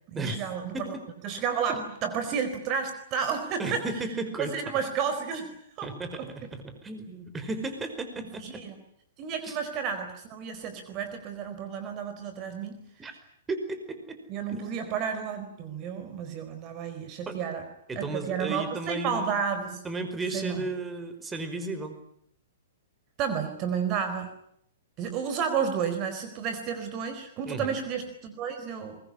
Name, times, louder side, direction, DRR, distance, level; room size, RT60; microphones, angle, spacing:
voice 1, 0.1-0.9 1.2-3.8 4.4-5.5 5.8-5.9 6.2-6.3 8.4-8.7 9.2-12.8 14.3-17.7 18.0-19.8 20.3-20.6 23.2-24.3 25.0-29.0, right 7 dB, 35° right, 8 dB, 4.3 m, -31 dB
voice 2, 3.6-4.5 5.8-8.6 9.4-9.6 13.0-13.1 13.5-14.2 14.5-14.7 17.3-17.4 17.9-19.3 19.8-21.9 27.4-27.7, right 2 dB, 15° right, 8 dB, 5.1 m, -34 dB
23.5 x 22.0 x 10.0 m, 0.71 s
hypercardioid pair, 115°, 0 cm